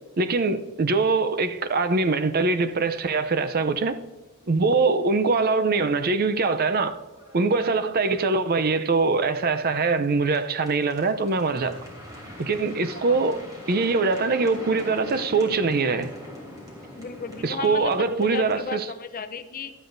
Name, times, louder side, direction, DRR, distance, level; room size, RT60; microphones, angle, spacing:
voice 1, 0.2-4.0 4.5-7.0 7.3-11.8 12.4-13.4 13.7-16.1 17.4-18.9, right 3 dB, 45° right, 0.6 m, -23 dB
sound 1, 1.7-2.1 2.4-2.5 2.8-3.0 3.3-3.4 5.2-5.4 5.9-6.0 6.4-18.6, left 1 dB, 20° right, 3.3 m, -43 dB
voice 2, 17.0-19.7, left 5 dB, 40° left, 0.6 m, -35 dB
18.0 x 12.5 x 2.6 m
head